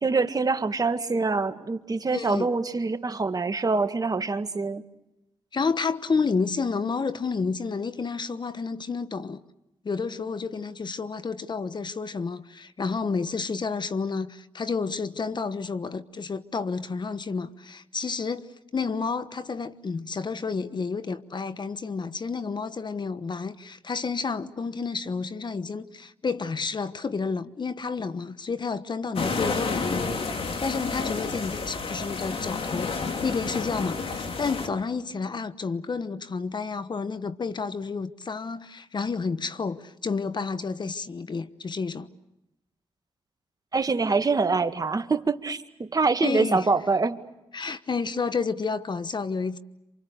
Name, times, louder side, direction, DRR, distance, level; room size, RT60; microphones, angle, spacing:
voice 1, 0.0-4.8 43.7-47.2, right 4 dB, 35° right, 2.0 m, -25 dB
voice 2, 2.1-2.5 5.5-9.4 9.8-30.1 30.6-42.1 46.2-46.7 47.5-49.6, left 4 dB, 45° left, 1.2 m, -30 dB
sound 1, 29.2-34.7, left 4 dB, 60° left, 2.9 m, -30 dB
28.0 x 27.0 x 6.7 m
supercardioid pair, 55°, 10 cm